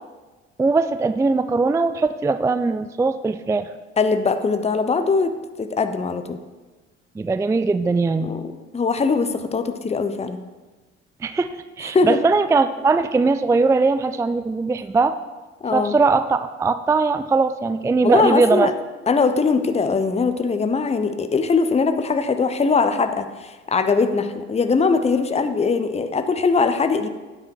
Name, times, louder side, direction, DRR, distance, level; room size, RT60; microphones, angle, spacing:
voice 1, 0.6-3.7 7.2-8.3 11.2-11.5 11.8-15.2 15.7-18.7, right 4 dB, 10° right, 12 dB, 0.4 m, -20 dB
voice 2, 4.0-6.4 8.2-8.5 8.7-10.4 11.8-12.2 15.6-15.9 18.0-18.7 19.1-27.1, left 4 dB, 20° left, 9 dB, 0.8 m, -21 dB
9.4 x 7.9 x 4.6 m, 1.2 s
hypercardioid pair, 55°, 33 cm